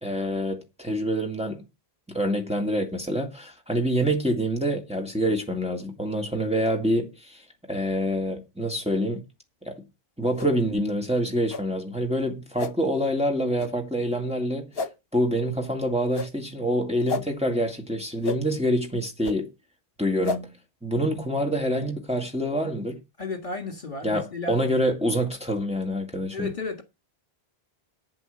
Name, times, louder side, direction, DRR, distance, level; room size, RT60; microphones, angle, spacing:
voice 1, 0.0-1.6 2.1-7.4 7.7-9.2 9.6-9.8 10.2-14.7 15.1-19.5 20.0-20.5 20.8-23.0 24.0-26.5, equal, 5° right, 2.2 m, -26 dB
sound 1, 10.4-10.5 11.5-11.6 12.6-12.7 13.6-13.7 14.7-14.9 16.1-16.3 17.1-17.2 18.2-18.4 19.2-19.4 20.2-20.4, left 3 dB, 65° left, 1.2 m, -30 dB
voice 2, 23.2-24.6 26.3-26.8, left 3 dB, 50° left, 2.0 m, -33 dB
9.0 x 7.9 x 6.6 m
omnidirectional pair, 1.1 m